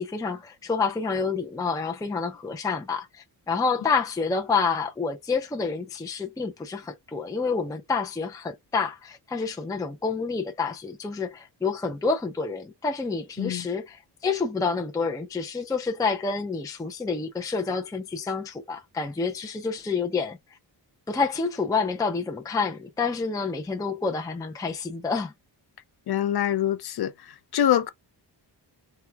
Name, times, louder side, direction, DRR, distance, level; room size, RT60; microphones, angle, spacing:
voice 1, 0.0-20.4 21.1-25.3, left 4 dB, 10° left, 0.4 m, -28 dB
voice 2, 26.1-27.1 27.5-27.9, left 10 dB, 60° left, 0.6 m, -24 dB
4.4 x 2.3 x 2.2 m
wide cardioid pair, 135°, 43 cm